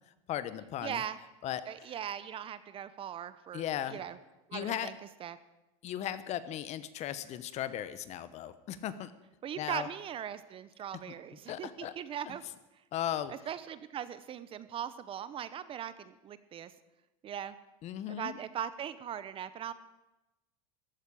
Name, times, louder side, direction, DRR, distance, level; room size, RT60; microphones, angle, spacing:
voice 1, 0.3-1.0 1.4-1.6 3.5-4.0 4.5-4.9 5.8-9.1 9.6-9.9 11.5-11.9 12.3-12.4 12.9-13.3 17.8-18.4, left 11 dB, 40° left, 14 dB, 1.0 m, -36 dB
voice 2, 0.8-1.2 1.6-3.6 3.9-4.2 4.5-4.9 5.2-5.4 9.4-12.4 13.3-16.7 17.2-17.6 18.1-19.7, right 9 dB, 30° right, 14 dB, 0.8 m, -39 dB
14.5 x 8.3 x 10.0 m, 1.0 s
supercardioid pair, 125°, 18 cm